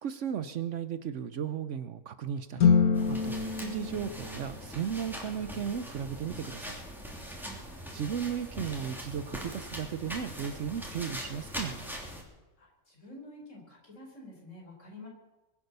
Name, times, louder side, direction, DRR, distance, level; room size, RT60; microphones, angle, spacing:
voice 1, 0.0-2.8 3.1-6.8 7.9-12.0, right 8 dB, 65° right, 13 dB, 1.0 m, -35 dB
sound 1, 2.6-5.0, left 6 dB, 80° left, 1.8 m, -26 dB
sound 2, 2.9-12.2, equal, ahead, 3.0 m, -41 dB
voice 2, 12.6-15.1, left 1 dB, 55° left, -1 dB, 5.2 m, -49 dB
22.0 x 8.4 x 6.8 m, 1.1 s
omnidirectional pair, 1.5 m